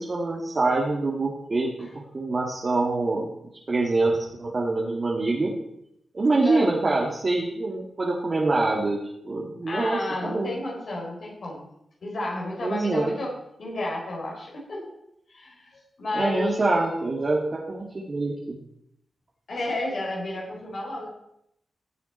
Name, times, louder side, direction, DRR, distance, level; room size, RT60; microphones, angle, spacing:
voice 1, 0.0-3.3 3.7-5.5 6.1-9.0 9.2-10.5 12.6-13.1 16.1-18.4, right 2 dB, 50° right, -2 dB, 2.1 m, -25 dB
voice 2, 9.7-11.7 12.0-13.3 13.6-14.9 15.3-16.7 19.5-21.1, left 2 dB, 70° left, -2 dB, 3.9 m, -32 dB
15.0 x 7.1 x 4.4 m, 0.78 s
cardioid pair, 50°, 0 cm